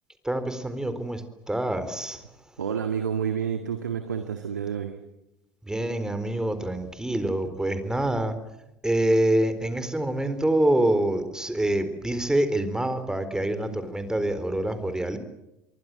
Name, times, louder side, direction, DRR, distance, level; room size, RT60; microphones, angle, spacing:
voice 1, 0.2-1.2 1.5-2.2 5.7-8.3 8.8-15.2, right 1 dB, 5° right, 11 dB, 4.1 m, -26 dB
voice 2, 2.6-5.0, right 7 dB, 80° right, 7 dB, 2.1 m, -29 dB
27.0 x 23.5 x 7.8 m, 0.89 s
figure-of-eight pair, 65°, 9 cm